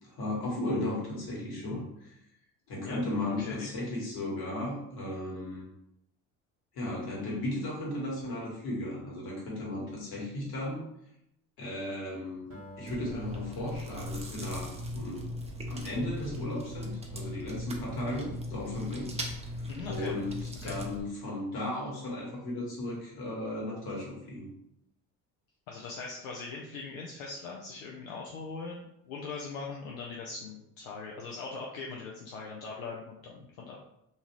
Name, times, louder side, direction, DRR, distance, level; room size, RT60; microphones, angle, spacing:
voice 1, 0.0-2.1 2.7-5.7 6.7-10.8 11.6-12.5 12.8-15.3 15.7-19.5 19.9-24.5, left 1 dB, 60° left, -4 dB, 1.4 m, -35 dB
voice 2, 3.4-3.7 19.7-20.1 20.6-20.8 25.7-33.8, left 4 dB, 85° left, -2 dB, 0.5 m, -41 dB
Acoustic guitar, 12.5-17.0, equal, 40° right, 1.0 m, -53 dB
Chewing mastication, 12.9-21.0, left 1 dB, 15° right, 0.6 m, -38 dB
2.7 x 2.4 x 2.9 m, 0.80 s
hypercardioid pair, 60°, 41 cm